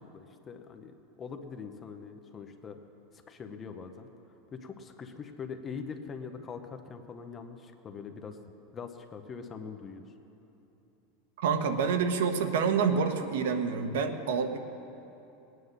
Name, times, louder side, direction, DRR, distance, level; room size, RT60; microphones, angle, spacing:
voice 1, 0.0-2.8 3.3-4.1 4.5-8.4 8.7-10.0, left 5 dB, 20° left, 6 dB, 0.7 m, -43 dB
voice 2, 11.4-14.6, right 6 dB, 85° right, 7 dB, 1.1 m, -27 dB
19.0 x 9.5 x 6.6 m, 3.0 s
supercardioid pair, 175°, 0 cm